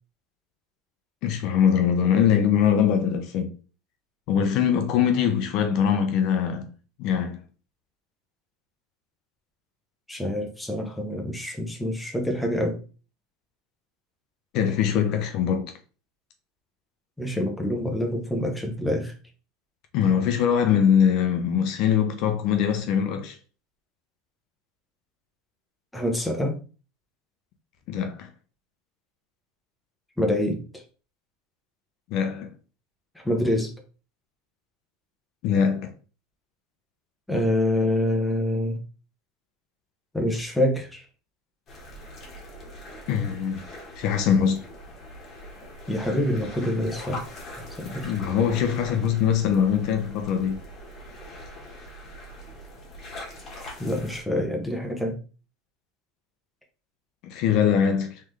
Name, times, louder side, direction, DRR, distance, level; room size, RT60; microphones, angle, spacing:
voice 1, 1.2-3.6 4.3-6.7 7.0-7.4 14.5-15.7 19.9-23.4 27.9-28.3 32.1-32.5 35.4-35.9 43.1-43.7 44.0-44.7 47.8-50.6 57.2-58.2, left 8 dB, 50° left, 0.7 m, -22 dB
voice 2, 10.1-12.8 17.2-19.1 25.9-26.6 30.2-30.8 33.2-33.7 37.3-38.8 40.1-41.1 45.9-47.2 47.6-48.1 53.8-55.1, left 1 dB, 5° left, 0.8 m, -26 dB
sound 1, 41.7-54.2, left 1 dB, 30° left, 1.5 m, -42 dB
3.7 x 3.3 x 3.2 m
supercardioid pair, 150°, 0 cm